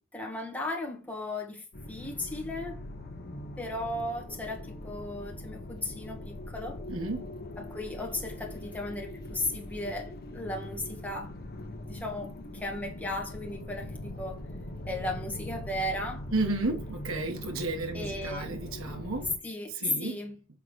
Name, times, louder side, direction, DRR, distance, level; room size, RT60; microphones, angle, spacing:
voice 1, 0.0-2.8 3.6-6.8 7.7-11.3 11.9-14.4 14.9-16.3 17.9-18.5 19.4-19.7 20.0-20.3, left 1 dB, 5° left, 1.8 m, -36 dB
sound 1, 1.7-19.4, left 1 dB, 45° left, 1.2 m, -41 dB
voice 2, 6.9-7.3 16.3-19.3 19.7-20.2, right 2 dB, 75° right, 1.4 m, -32 dB
6.7 x 3.9 x 6.2 m
head